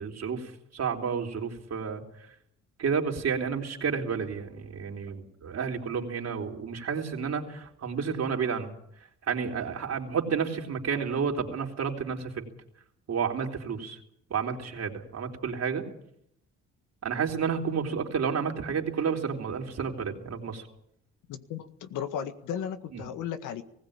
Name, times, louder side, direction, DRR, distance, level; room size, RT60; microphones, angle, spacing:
voice 1, 0.0-2.0 2.8-8.7 9.3-12.5 13.1-14.0 14.3-15.8 17.0-20.6 22.9-23.1, right 6 dB, 60° right, 2 dB, 3.8 m, -31 dB
voice 2, 21.3-23.6, left 8 dB, 85° left, 9 dB, 1.8 m, -35 dB
19.5 x 16.5 x 8.8 m, 0.72 s
cardioid pair, 90°, 30 cm